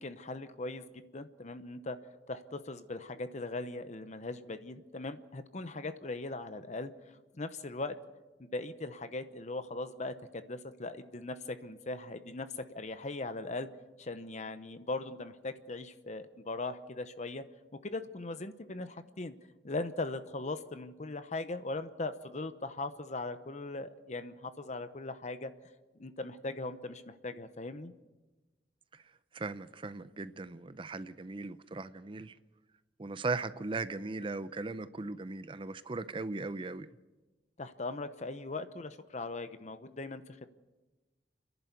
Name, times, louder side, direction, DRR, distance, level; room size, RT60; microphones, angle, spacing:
voice 1, 0.0-2.0 2.3-6.9 7.4-8.0 8.5-13.7 14.0-17.4 17.8-19.3 19.6-25.5 26.0-27.9 37.6-40.5, left 2 dB, 40° left, 0.8 m, -39 dB
voice 2, 29.3-32.3 33.0-36.9, right 3 dB, 30° right, 0.6 m, -38 dB
30.0 x 11.0 x 8.2 m
head